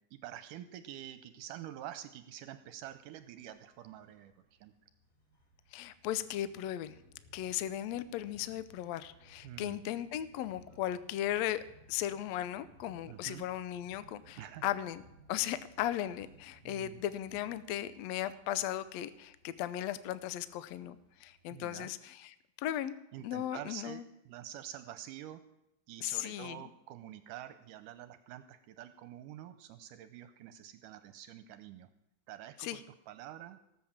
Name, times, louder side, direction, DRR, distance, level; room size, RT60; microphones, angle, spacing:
voice 1, 0.1-4.7 9.4-9.8 13.1-13.5 14.4-14.7 16.6-17.0 21.5-21.9 23.1-25.4 25.9-31.9 32.3-33.6, right 12 dB, 80° right, 11 dB, 2.2 m, -47 dB
sound 1, 2.7-21.8, right 1 dB, 55° left, 6.9 m, -63 dB
voice 2, 5.7-7.0 7.3-15.0 15.3-22.9 23.2-24.0 26.0-26.6 32.6-32.8, left 12 dB, 85° left, 14 dB, 1.5 m, -37 dB
18.0 x 7.7 x 7.2 m, 0.84 s
omnidirectional pair, 3.9 m